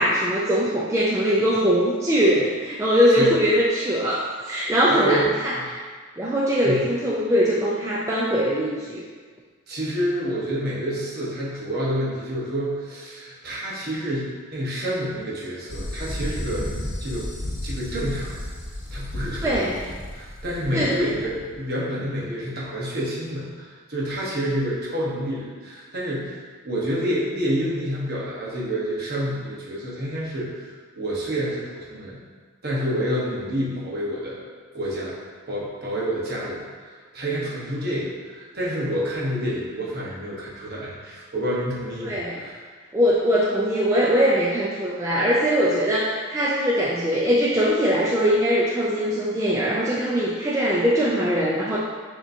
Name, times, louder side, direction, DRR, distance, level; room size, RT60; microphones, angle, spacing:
voice 1, 0.0-5.5 6.2-9.0 19.4-19.7 20.7-20.9 42.0-42.4 42.9-51.8, equal, 15° right, -6 dB, 0.3 m, -21 dB
voice 2, 4.9-5.3 5.5-5.6 6.6-6.8 9.7-16.7 17.0-17.3 17.6-18.5 18.9-19.8 20.1-32.2 32.6-34.4 34.7-35.2 35.5-42.6, equal, 50° right, -6 dB, 1.0 m, -28 dB
sound 1, 15.7-21.6, left 1 dB, 65° left, 0.9 m, -33 dB
6.6 x 2.9 x 2.6 m, 1.5 s
head